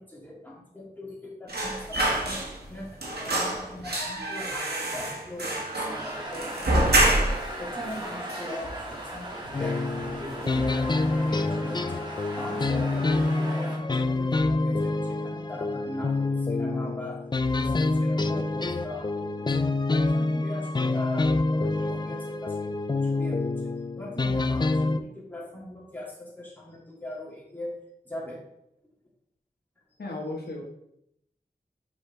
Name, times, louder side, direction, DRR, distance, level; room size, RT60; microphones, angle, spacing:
voice 1, 0.0-2.4 2.7-7.2 7.6-9.9 10.2-12.0 12.4-17.2 17.5-19.6 19.9-22.7 23.0-27.8 28.0-28.4, left 1 dB, 10° left, -5 dB, 2.3 m, -40 dB
sound 1, 1.5-2.7 3.0-7.5 7.9-8.0 8.3-9.1 9.4-9.6 10.0-10.6 10.9-11.1, right 1 dB, 80° right, 1.4 m, -27 dB
sound 2, 5.9-13.8, right 1 dB, 25° right, 1.5 m, -38 dB
sound 3, 9.5-25.0, left 2 dB, 25° left, 0.3 m, -27 dB
voice 2, 30.0-30.6, left 2 dB, 80° left, -1 dB, 1.2 m, -34 dB
6.8 x 4.6 x 3.3 m, 0.78 s
wide cardioid pair, 50°, 16 cm